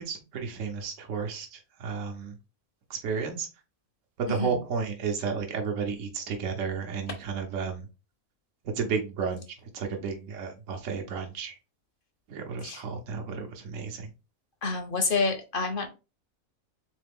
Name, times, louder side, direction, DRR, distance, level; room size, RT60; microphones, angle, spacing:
voice 1, 0.0-2.3 2.9-3.5 4.2-7.9 8.7-9.4 9.7-11.6 12.3-14.1, right 5 dB, 65° right, 2 dB, 1.1 m, -32 dB
voice 2, 4.3-4.6 12.6-12.8 14.6-15.9, left 4 dB, 45° left, 6 dB, 0.8 m, -28 dB
3.8 x 3.3 x 3.5 m, 0.29 s
omnidirectional pair, 1.5 m